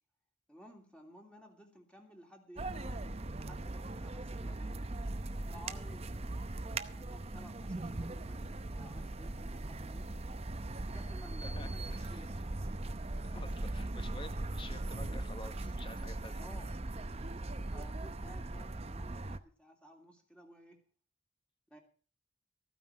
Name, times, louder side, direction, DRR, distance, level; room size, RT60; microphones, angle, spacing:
voice 1, 0.5-3.0 3.4-4.8 5.5-6.4 7.0-10.2 10.9-12.8 13.1-13.5 16.4-16.7 17.7-20.8 21.7-21.8, equal, 5° left, 2 dB, 2.8 m, -56 dB
sound 1, 2.6-19.4, right 2 dB, 35° right, 0.8 m, -39 dB
voice 2, 11.4-12.3 13.2-16.4, left 2 dB, 30° left, 10 dB, 1.3 m, -50 dB
14.5 x 9.5 x 6.2 m, 0.41 s
head